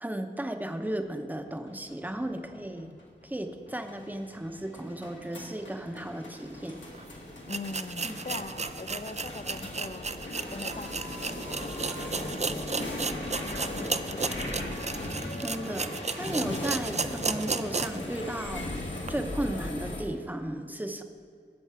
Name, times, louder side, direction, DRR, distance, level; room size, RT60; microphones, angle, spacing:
voice 1, 0.0-2.9 3.2-6.8 8.0-8.2 15.4-18.6 19.1-21.0, right 1 dB, 10° right, 6 dB, 0.7 m, -35 dB
sound 1, 1.4-20.0, left 1 dB, 90° left, 1.5 m, -38 dB
sound 2, 6.9-7.0 7.5-18.1 18.5-18.6 19.0-19.1, right 4 dB, 40° right, 0.4 m, -34 dB
voice 2, 7.5-14.9 16.4-16.8, left 3 dB, 40° left, 10 dB, 0.6 m, -43 dB
sound 3, 10.1-16.6, equal, 75° right, 1.3 m, -51 dB
11.5 x 7.1 x 4.7 m, 2.1 s
wide cardioid pair, 50°, 19 cm